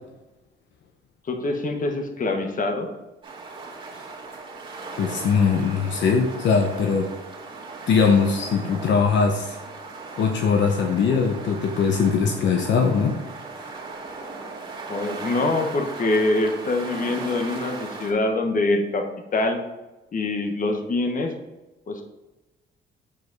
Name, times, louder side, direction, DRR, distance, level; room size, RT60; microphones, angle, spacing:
voice 1, 1.3-2.9 14.9-19.1 19.3-19.6 20.1-21.3 21.9-22.0, left 2 dB, 45° left, 4 dB, 1.2 m, -24 dB
sound 1, 3.2-18.1, right 3 dB, 25° right, 2.2 m, -37 dB
voice 2, 5.0-7.1 7.9-9.6 10.2-13.2, left 5 dB, 65° left, 3 dB, 0.8 m, -21 dB
7.3 x 4.9 x 4.0 m, 1.0 s
cardioid pair, 90°, 20 cm